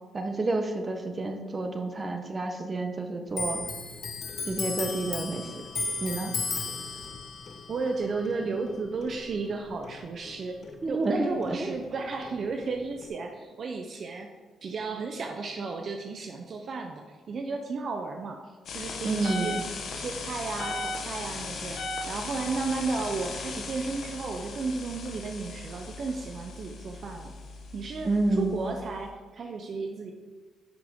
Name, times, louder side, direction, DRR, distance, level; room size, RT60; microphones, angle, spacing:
voice 1, 0.1-3.6 4.5-5.5 6.0-6.3 10.8-11.7 19.0-19.6 28.0-28.6, right 2 dB, 30° right, 4 dB, 1.1 m, -29 dB
Clock, 3.3-10.4 10.6-12.0 12.2-13.1, left 4 dB, 50° left, 1.1 m, -35 dB
voice 2, 7.7-10.6 10.9-14.3 14.6-18.4 18.7-19.6 19.9-21.8 22.1-27.3 27.7-30.1, right 4 dB, 50° right, 3 dB, 0.8 m, -33 dB
sound 1, 18.7-29.1, left 3 dB, 65° left, 1.5 m, -37 dB
9.8 x 6.0 x 3.8 m, 1.3 s
cardioid pair, 90°, 0 cm